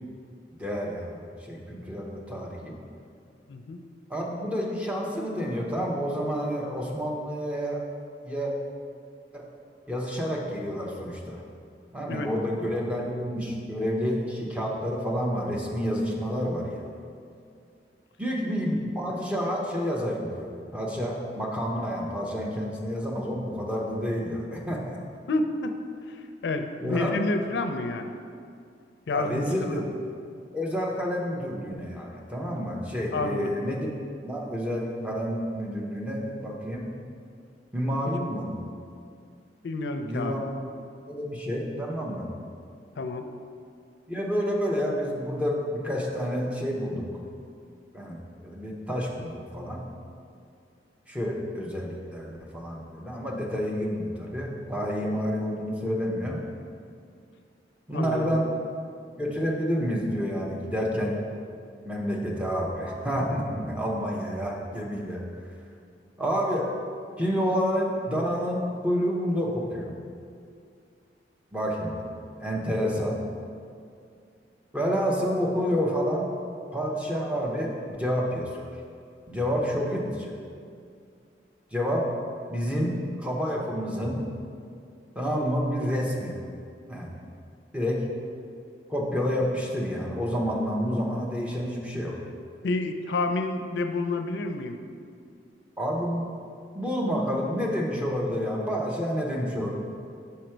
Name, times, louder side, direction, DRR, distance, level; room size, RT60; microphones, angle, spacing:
voice 1, 0.5-2.7 4.1-7.8 8.2-8.5 9.3-9.4 9.9-11.4 11.9-16.8 18.2-25.0 26.8-27.1 29.1-29.9 30.5-33.9 34.2-36.9 37.7-38.6 40.0-40.6 41.1-42.3 44.1-47.0 47.9-49.8 51.1-56.4 57.9-58.5 59.2-61.2 61.9-65.2 66.2-66.7 67.2-69.9 71.5-72.1 72.4-73.2 74.7-76.3 76.7-78.7 79.3-80.3 81.7-82.1 82.5-84.2 85.2-86.4 86.9-87.2 87.7-88.0 88.9-92.1 95.8-96.3 96.7-99.8, equal, 10° right, -2 dB, 0.7 m, -29 dB
voice 2, 25.3-25.7 26.1-28.1 29.1-29.7 33.1-33.5 39.6-40.4 43.0-43.3 57.9-58.4 92.6-94.8, left 2 dB, 75° left, 7 dB, 0.4 m, -29 dB
5.7 x 5.0 x 4.4 m, 2.3 s
head